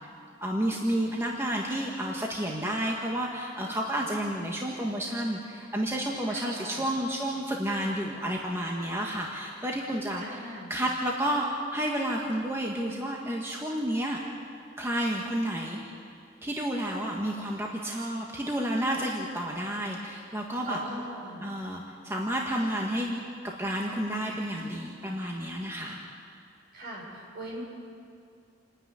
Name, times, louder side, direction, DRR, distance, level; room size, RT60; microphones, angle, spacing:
voice 1, 0.4-10.4 10.7-14.2 14.8-15.9 16.4-20.8 21.4-23.2 23.6-26.0, right 1 dB, 15° right, -1 dB, 1.6 m, -31 dB
voice 2, 6.3-6.8 10.1-10.7 20.7-21.4 26.7-27.6, right 1 dB, 55° right, -3 dB, 6.7 m, -40 dB
28.0 x 9.8 x 9.9 m, 2.4 s
head